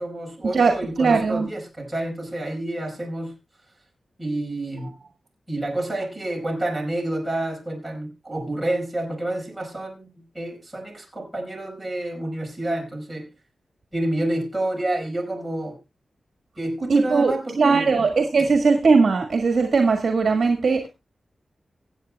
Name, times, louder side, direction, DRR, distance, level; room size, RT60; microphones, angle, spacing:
voice 1, 0.0-3.4 4.2-4.9 5.5-13.3 13.9-15.8 16.6-18.1 18.4-18.5, right 1 dB, 5° right, -2 dB, 4.6 m, -29 dB
voice 2, 0.5-1.5 16.9-20.9, right 4 dB, 55° right, 4 dB, 1.7 m, -19 dB
24.5 x 8.3 x 2.3 m, 0.24 s
wide cardioid pair, 175°, 0 cm